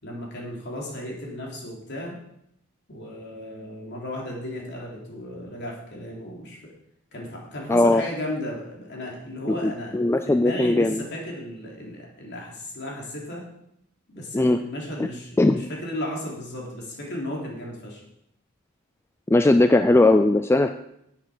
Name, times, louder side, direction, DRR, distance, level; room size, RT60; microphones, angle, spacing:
voice 1, 0.0-2.2 2.9-6.6 7.1-10.0 10.3-13.4 14.1-18.0, left 1 dB, 55° left, -2 dB, 3.2 m, -34 dB
voice 2, 7.7-8.0 9.5-11.0 14.3-14.6 15.0-15.1 15.4-15.6 19.3-20.7, left 2 dB, 10° left, 8 dB, 0.3 m, -19 dB
11.0 x 8.3 x 5.0 m, 0.77 s
head